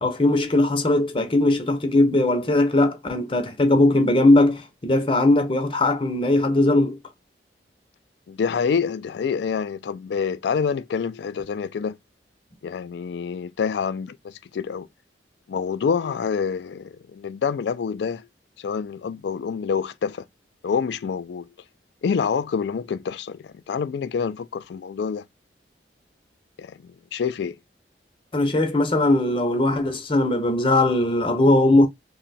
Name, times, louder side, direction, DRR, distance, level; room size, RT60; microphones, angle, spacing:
voice 1, 0.0-7.0 28.3-31.9, left 2 dB, 30° left, 0.6 m, -19 dB
voice 2, 8.3-12.0 12.6-14.9 15.5-18.3 18.6-20.2 20.6-21.5 22.0-25.2 26.6-27.6, left 6 dB, 75° left, 0.3 m, -27 dB
2.7 x 2.2 x 4.0 m
head